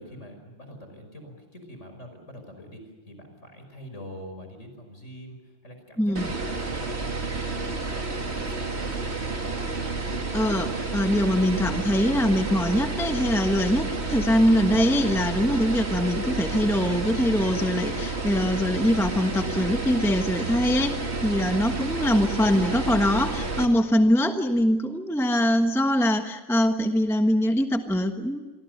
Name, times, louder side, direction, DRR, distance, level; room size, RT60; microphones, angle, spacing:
voice 1, 0.0-9.5, equal, 30° left, 6 dB, 5.7 m, -45 dB
voice 2, 6.0-6.3 10.3-28.4, equal, ahead, 5 dB, 0.8 m, -23 dB
sound 1, 6.2-23.7, right 3 dB, 30° right, 2.5 m, -30 dB
sound 2, 6.7-6.9 7.6-7.7 9.6-10.8 11.1-12.0 12.4-13.8, right 4 dB, 60° left, 5.5 m, -50 dB
28.5 x 23.5 x 6.7 m, 1.2 s
omnidirectional pair, 2.4 m